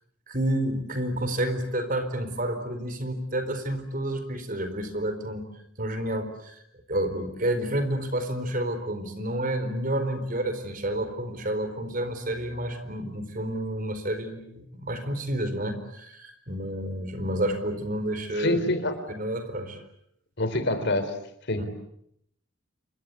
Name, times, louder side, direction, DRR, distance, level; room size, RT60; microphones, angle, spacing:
voice 1, 0.3-5.4 5.8-6.6 6.9-18.7 19.1-19.8 21.5-21.6, right 1 dB, 40° right, 9 dB, 4.3 m, -30 dB
voice 2, 18.3-18.9 20.4-21.1 21.5-21.6, left 1 dB, 55° left, 10 dB, 3.9 m, -26 dB
28.5 x 24.5 x 8.4 m, 0.73 s
head